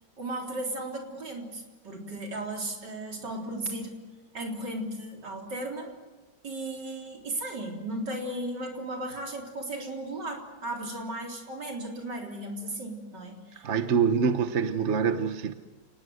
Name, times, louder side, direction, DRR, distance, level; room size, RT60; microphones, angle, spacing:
voice 1, 0.2-4.0 4.3-6.0 6.4-13.7, right 1 dB, 65° right, 1 dB, 4.3 m, -35 dB
voice 2, 13.6-15.5, right 6 dB, 45° right, 9 dB, 1.2 m, -25 dB
29.5 x 19.5 x 7.8 m, 1.2 s
omnidirectional pair, 2.0 m